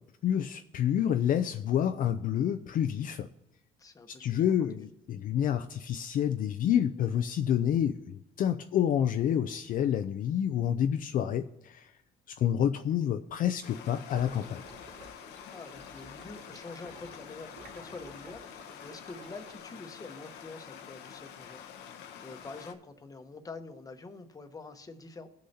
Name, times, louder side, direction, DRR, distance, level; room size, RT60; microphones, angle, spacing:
voice 1, 0.2-3.3 4.1-11.9 12.4-14.6, left 9 dB, 55° left, 8 dB, 0.5 m, -28 dB
voice 2, 3.8-4.9 15.5-18.4 18.8-25.3, left 3 dB, 20° left, 6 dB, 1.0 m, -46 dB
Stream, 13.6-22.7, left 8 dB, 85° left, 0.9 m, -47 dB
sound 1, 14.1-19.6, right 2 dB, 55° right, 3.2 m, -53 dB
18.5 x 6.4 x 2.8 m, 0.83 s
cardioid pair, 110°, 17 cm